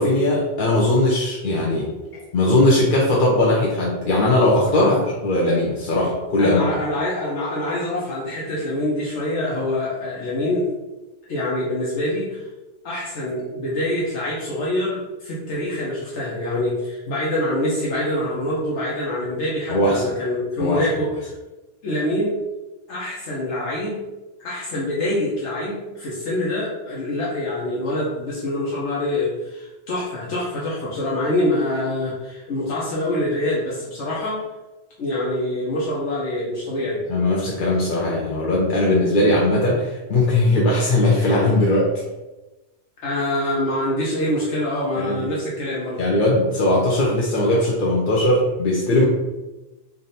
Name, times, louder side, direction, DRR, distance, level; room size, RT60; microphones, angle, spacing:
voice 1, 0.0-1.9 2.3-4.9 5.2-6.6 19.7-20.1 20.6-20.8 37.1-41.9 45.0-45.3 46.0-49.1, left 1 dB, 55° left, -4 dB, 0.8 m, -19 dB
voice 2, 4.7-5.1 6.4-10.7 11.3-12.5 12.8-21.3 21.8-22.4 22.9-24.0 24.4-34.4 35.0-37.0 43.0-46.1, left 1 dB, 85° left, -6 dB, 1.1 m, -25 dB
3.4 x 2.6 x 4.1 m, 1.1 s
omnidirectional pair, 1.2 m